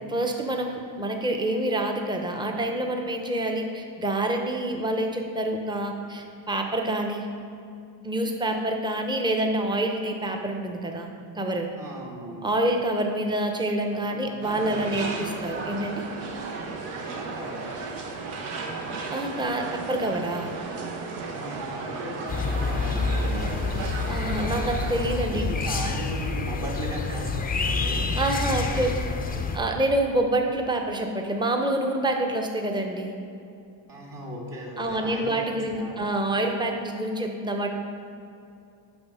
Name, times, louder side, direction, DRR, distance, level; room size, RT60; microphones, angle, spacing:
voice 1, 0.1-7.2 8.0-11.1 11.4-11.7 12.4-16.0 19.1-20.5 24.1-25.5 28.1-28.9 29.5-33.1 34.8-37.7, right 1 dB, 10° right, 3 dB, 0.8 m, -27 dB
voice 2, 11.7-12.4 13.9-15.1 16.9-17.8 21.2-23.8 25.2-28.0 28.4-29.6 33.9-35.4 35.7-36.1, right 1 dB, 45° right, -2 dB, 2.0 m, -37 dB
sound 1, 14.4-25.2, right 4 dB, 70° right, 1.3 m, -34 dB
sound 2, 22.3-29.6, left 4 dB, 20° left, 0.6 m, -28 dB
7.9 x 5.5 x 5.6 m, 2.6 s
supercardioid pair, 95°, 49 cm